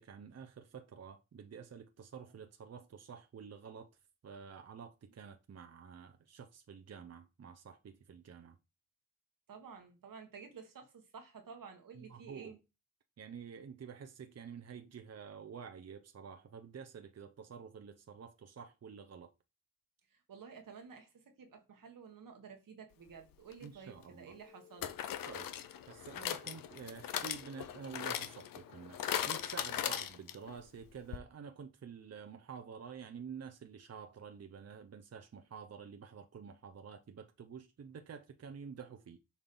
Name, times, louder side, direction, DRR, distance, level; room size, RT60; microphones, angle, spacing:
voice 1, 0.0-3.9 4.2-8.6 11.9-12.6 13.2-19.3 23.6-24.3 25.2-25.5 25.9-39.2, right 6 dB, 50° right, 0.7 m, -49 dB
voice 2, 9.5-12.6 20.1-24.9, right 6 dB, 80° right, 1.5 m, -52 dB
sound 1, 23.5-23.6 24.8-30.6 30.8-30.9 31.1-31.2, left 10 dB, 90° left, 0.6 m, -39 dB
7.1 x 2.7 x 5.4 m
cardioid pair, 50°, 33 cm